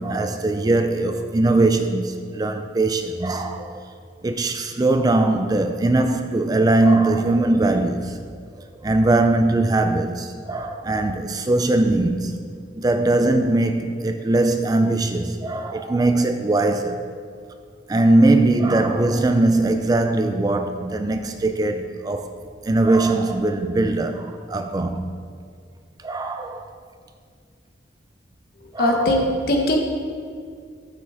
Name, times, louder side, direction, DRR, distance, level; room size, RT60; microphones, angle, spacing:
voice 1, 0.0-3.8 4.2-8.2 8.8-12.4 12.8-17.0 17.9-22.3 22.6-25.1 26.0-26.7 28.7-29.3, right 2 dB, 20° right, 0.3 m, -20 dB
voice 2, 28.8-29.8, left 1 dB, 55° left, 1.3 m, -20 dB
13.5 x 7.2 x 3.6 m
head